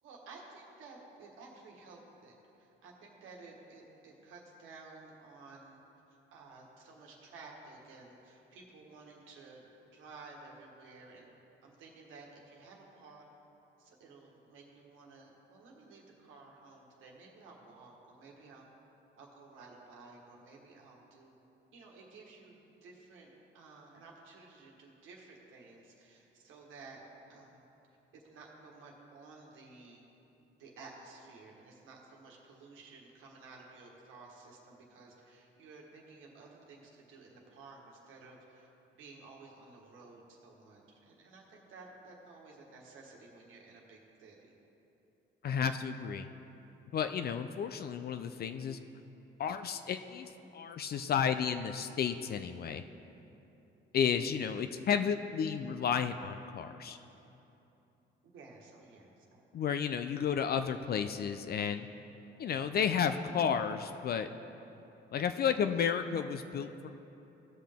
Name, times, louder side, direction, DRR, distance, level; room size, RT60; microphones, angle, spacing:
voice 1, 0.0-5.8 6.1-11.3 11.6-13.2 13.8-18.6 19.1-21.3 21.7-27.0 27.3-27.6 28.1-30.0 30.6-44.5 58.2-59.4, right 3 dB, 90° right, -1 dB, 1.5 m, -54 dB
voice 2, 45.4-46.3 46.9-48.8 49.4-52.8 53.9-57.0 59.5-61.9 62.4-64.3 65.1-66.7, left 7 dB, 50° left, 9 dB, 0.4 m, -32 dB
16.0 x 5.7 x 3.6 m, 3.0 s
cardioid pair, 90°, 20 cm